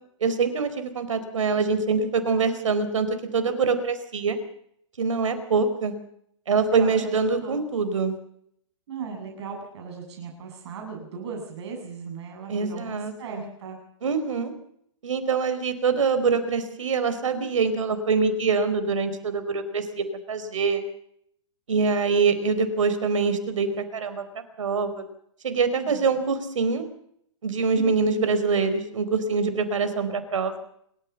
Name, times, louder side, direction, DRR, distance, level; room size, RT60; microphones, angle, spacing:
voice 1, 0.2-4.4 5.0-5.9 6.5-8.2 12.5-13.4 14.0-14.5 15.0-20.8 21.7-24.2 24.6-25.0 25.4-26.8 27.4-30.5, right 4 dB, 85° right, 10 dB, 4.4 m, -24 dB
voice 2, 6.7-7.6 8.9-13.8 25.8-26.0 27.8-28.3, right 5 dB, 60° right, 2 dB, 8.0 m, -37 dB
27.0 x 14.0 x 7.2 m, 0.70 s
hypercardioid pair, 135°, 16 cm